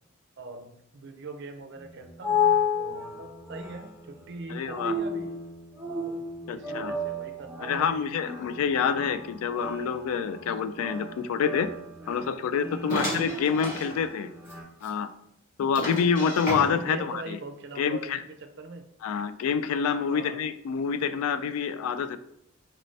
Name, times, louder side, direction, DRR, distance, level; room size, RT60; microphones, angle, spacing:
voice 1, 0.4-2.5 2.7-5.3 6.0-6.2 6.5-8.0 12.8-13.1 16.9-18.1 18.6-18.8 20.1-20.4, right 3 dB, 55° right, 6 dB, 0.5 m, -42 dB
sound 1, 1.8-14.6, left 4 dB, 10° right, 0.6 m, -33 dB
voice 2, 4.5-4.9 6.5-6.9 7.6-11.7 12.1-14.3 14.8-15.1 15.6-17.4 17.8-18.2 19.0-22.2, left 6 dB, 90° left, 14 dB, 0.3 m, -27 dB
sound 2, 12.9-13.9 14.4-14.5 14.8-14.9 15.7-17.0, equal, 40° left, 1.3 m, -32 dB
4.2 x 2.7 x 3.1 m, 0.77 s
head